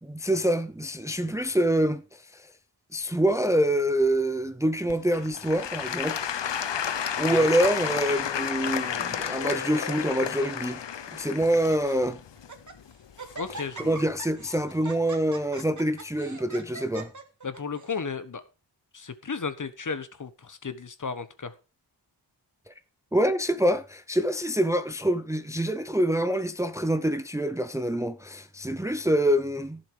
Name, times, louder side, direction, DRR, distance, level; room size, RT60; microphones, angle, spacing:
voice 1, 0.0-2.5 2.9-6.3 6.8-10.8 11.1-12.2 13.8-17.1 22.7-22.8 23.1-29.8, right 1 dB, 5° right, 0.6 m, -26 dB
Applause / Crowd, 4.9-13.8 14.4-14.5, left 8 dB, 75° left, 1.0 m, -32 dB
Laughter, 6.9-7.7 8.4-8.8 9.1-9.2 9.9-10.6 11.1-11.2 11.5-11.9 12.4-12.8 13.2-18.0, right 3 dB, 40° right, 2.0 m, -43 dB
voice 2, 13.4-14.0 17.4-18.4 18.9-21.5, left 5 dB, 45° left, 1.3 m, -34 dB
15.5 x 7.4 x 5.0 m
wide cardioid pair, 140°, 43 cm